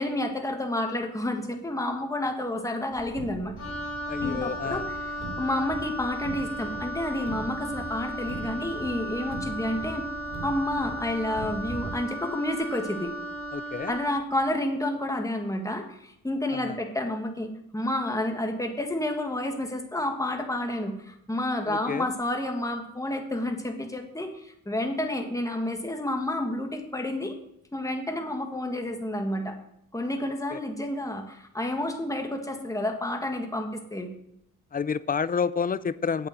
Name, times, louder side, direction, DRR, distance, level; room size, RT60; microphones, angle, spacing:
voice 1, 0.0-3.5 4.2-10.0 10.4-13.1 13.9-27.4 27.7-29.6 29.9-34.1, left 1 dB, 10° left, 4 dB, 1.6 m, -30 dB
Car, 2.9-11.9, right 2 dB, 45° right, 3.2 m, -41 dB
Wind instrument woodwind instrument, 3.6-14.2, equal, 45° left, 4.8 m, -35 dB
voice 2, 4.1-4.9 13.5-14.0 16.5-16.8 21.7-22.1 30.5-30.6 34.7-36.3, left 6 dB, 25° left, 17 dB, 0.3 m, -29 dB
8.5 x 8.2 x 7.6 m, 0.76 s
wide cardioid pair, 125°, 37 cm